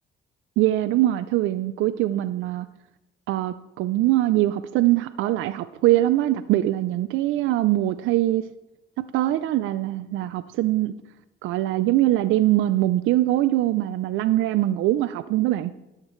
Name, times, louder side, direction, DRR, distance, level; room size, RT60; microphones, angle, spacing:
voice 1, 0.6-2.7 3.3-8.4 9.1-10.9 11.4-15.7, right 15 dB, 85° right, 13 dB, 0.4 m, -22 dB
13.0 x 10.5 x 3.1 m, 0.97 s
cardioid pair, 90°, 20 cm